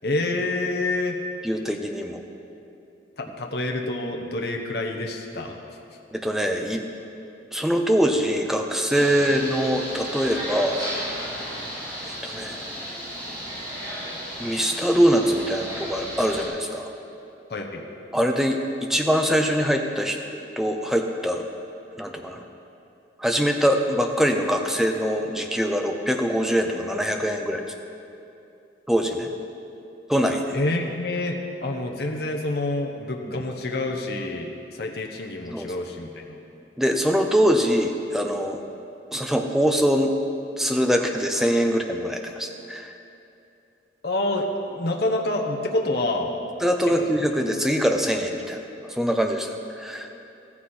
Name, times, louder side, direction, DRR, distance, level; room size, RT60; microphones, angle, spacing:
voice 1, 0.0-1.2 3.2-5.6 9.2-9.3 17.5-17.8 30.5-36.4 44.0-46.3, left 2 dB, 60° left, 1 dB, 1.1 m, -27 dB
voice 2, 1.4-2.2 6.1-6.8 7.5-10.8 12.1-12.6 14.4-16.9 18.1-20.2 20.6-21.4 22.0-22.4 23.2-27.7 28.9-29.3 30.1-30.4 33.3-33.4 35.5-35.7 36.8-38.6 39.1-40.1 40.6-42.9 46.6-48.6 48.9-50.1, equal, ahead, 3 dB, 0.8 m, -23 dB
sound 1, 8.9-16.5, equal, 25° right, 3.8 m, -34 dB
14.5 x 14.0 x 4.4 m, 2.7 s
head